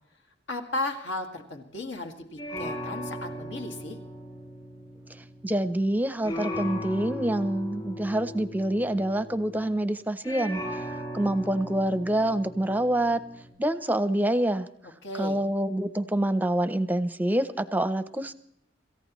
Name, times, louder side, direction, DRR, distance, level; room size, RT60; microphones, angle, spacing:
voice 1, 0.5-4.0 15.0-15.4, left 2 dB, 70° left, 4 dB, 2.2 m, -35 dB
sound 1, 2.4-5.9 6.2-9.8 10.2-13.5, equal, 25° left, 5.9 m, -38 dB
voice 2, 5.4-10.6 11.1-13.2 13.6-14.7 15.2-18.3, right 1 dB, 10° right, 13 dB, 0.7 m, -26 dB
26.5 x 15.0 x 3.1 m, 0.73 s
head